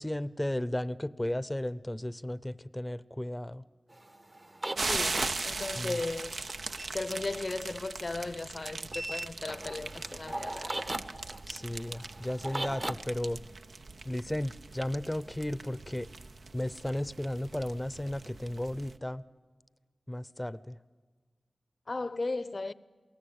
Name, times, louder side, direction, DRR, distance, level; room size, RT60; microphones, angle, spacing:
voice 1, 0.0-3.6 5.8-6.0 11.5-13.4 14.0-16.1 16.5-19.2 20.1-20.8, left 1 dB, 15° left, 0.7 m, -34 dB
sound 1, 3.9-6.9 8.9-12.9, right 1 dB, 35° right, 1.1 m, -39 dB
sound 2, 4.8-19.0, right 3 dB, 80° right, 0.8 m, -40 dB
voice 2, 4.9-6.4 6.9-10.9 21.9-22.7, left 3 dB, 55° left, 0.8 m, -36 dB
28.0 x 18.5 x 8.8 m
cardioid pair, 45°, 0 cm